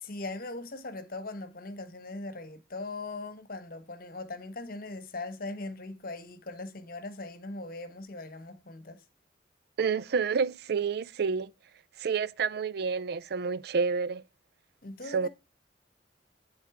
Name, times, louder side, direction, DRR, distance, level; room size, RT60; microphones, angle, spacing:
voice 1, 0.0-9.0 14.8-15.3, left 2 dB, 55° left, 1.2 m, -40 dB
voice 2, 9.8-11.5 12.0-14.2 15.1-15.3, right 5 dB, 60° right, 0.4 m, -29 dB
11.0 x 4.0 x 4.8 m
head